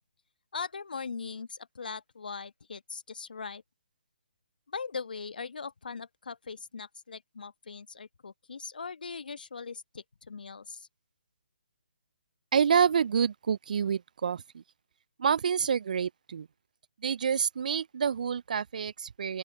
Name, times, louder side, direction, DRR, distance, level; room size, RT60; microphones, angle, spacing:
voice 1, 0.5-3.6 4.7-10.9, left 5 dB, 70° left, 1.2 m, -40 dB
voice 2, 12.5-14.4 15.2-16.5 17.0-19.4, right 7 dB, 55° right, 0.4 m, -27 dB
open air
figure-of-eight pair, 140°, 5 cm